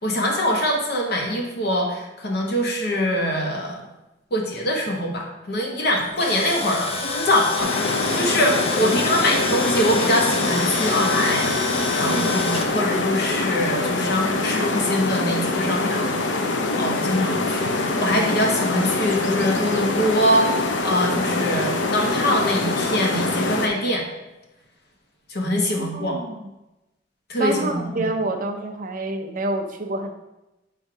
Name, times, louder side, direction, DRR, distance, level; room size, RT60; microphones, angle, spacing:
voice 1, 0.0-3.8 4.3-16.1 16.8-24.0 25.3-26.2 27.3-28.0, left 1 dB, 60° left, 0 dB, 1.2 m, -23 dB
Tools, 6.0-12.7, left 3 dB, 35° left, 0.6 m, -28 dB
sound 1, 7.6-23.7, left 2 dB, 85° left, 0.7 m, -24 dB
voice 2, 12.0-12.5 25.8-26.4 27.4-30.1, right 2 dB, 50° right, 4 dB, 0.6 m, -27 dB
7.7 x 2.7 x 4.8 m, 0.99 s
head